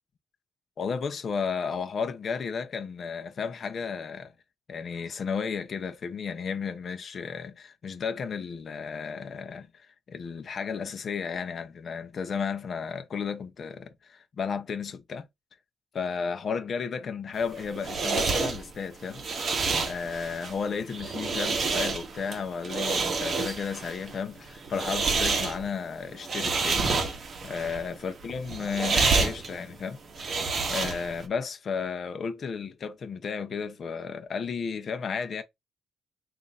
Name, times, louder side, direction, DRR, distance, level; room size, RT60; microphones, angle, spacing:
voice 1, 0.8-4.3 4.7-15.3 15.9-19.2 19.8-27.2 27.4-35.4, left 6 dB, 40° left, 0.6 m, -33 dB
sound 1, 17.4-31.3, right 4 dB, 40° right, 0.9 m, -29 dB
3.8 x 2.5 x 4.0 m
cardioid pair, 155°, 0 cm